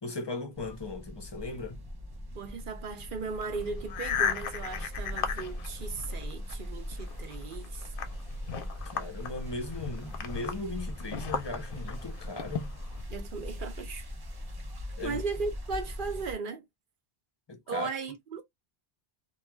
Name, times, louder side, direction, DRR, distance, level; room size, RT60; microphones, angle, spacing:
voice 1, 0.0-1.9 8.5-12.7 15.0-15.2 17.5-17.9, left 2 dB, 35° left, 0.5 m, -38 dB
sound 1, 0.5-16.3, left 1 dB, 30° right, 0.5 m, -40 dB
voice 2, 2.3-7.9 13.1-14.1 15.0-16.6 17.7-18.4, right 4 dB, 60° right, 0.8 m, -37 dB
sound 2, 3.3-6.5 6.9-13.0, left 7 dB, 65° left, 0.7 m, -36 dB
2.3 x 2.3 x 3.1 m
omnidirectional pair, 1.0 m